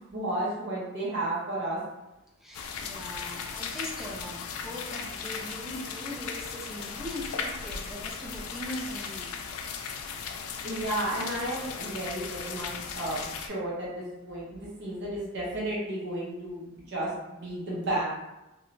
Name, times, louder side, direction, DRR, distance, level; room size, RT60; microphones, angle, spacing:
voice 1, 0.0-1.8 10.6-18.0, right 1 dB, 55° right, -6 dB, 0.6 m, -33 dB
voice 2, 2.4-9.4, left 1 dB, ahead, -3 dB, 0.3 m, -40 dB
sound 1, 2.5-13.5, left 6 dB, 85° left, 0.3 m, -37 dB
2.9 x 2.1 x 2.5 m, 0.98 s
head